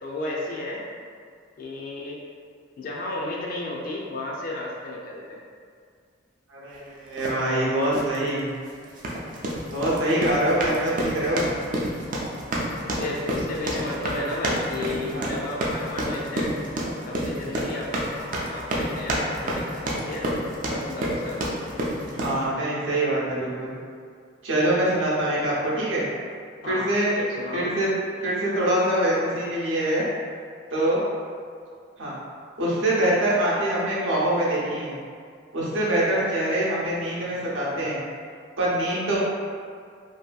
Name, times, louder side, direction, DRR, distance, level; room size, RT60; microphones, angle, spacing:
voice 1, 0.0-0.9 1.6-2.2 2.8-5.4 10.9-11.2 12.8-16.5 17.1-20.3 20.7-21.6 26.6-27.7, left 2 dB, 45° left, -3 dB, 0.3 m, -33 dB
voice 2, 6.5-8.5 9.7-11.5 15.1-15.3 22.1-23.7 24.4-26.1 26.7-27.1 27.5-27.9 28.2-30.0 30.7-31.0 32.0-32.1 32.6-35.0 35.5-38.0 38.6-39.2, right 1 dB, 85° right, -7 dB, 0.7 m, -24 dB
sound 1, 7.2-7.4 7.9-8.2 8.9-22.4, right 1 dB, 40° right, 0.3 m, -29 dB
2.7 x 2.5 x 2.2 m, 2.1 s
head